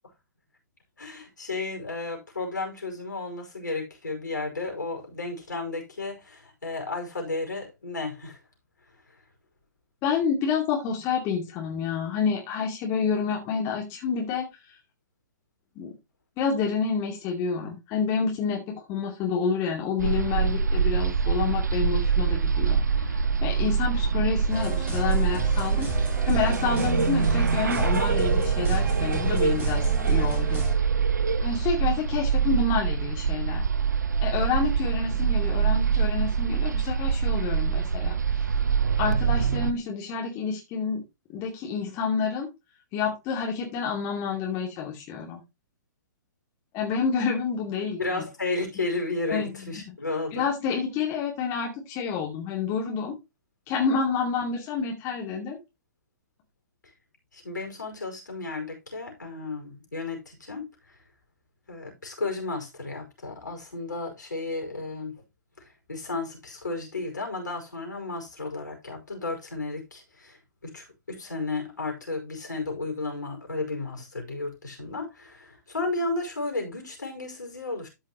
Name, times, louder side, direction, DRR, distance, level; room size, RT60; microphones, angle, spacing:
voice 1, 1.0-8.4 48.0-50.4 56.8-56.9 57.3-60.6 61.7-65.2 65.6-77.9, left 3 dB, 70° left, 5.0 m, -33 dB
voice 2, 10.0-14.5 15.8-15.9 16.4-25.9 26.3-30.6 31.4-33.6 34.2-38.2 39.0-41.0 41.3-42.5 42.9-45.4 46.7-48.2 49.3-49.9 50.3-53.1 53.7-55.6, left 5 dB, 25° left, 2.5 m, -28 dB
sound 1, 20.0-39.7, right 6 dB, 70° right, 0.7 m, -24 dB
sound 2, 24.5-30.7, right 1 dB, 20° right, 3.1 m, -33 dB
13.5 x 5.5 x 3.0 m
figure-of-eight pair, 115°, 10 cm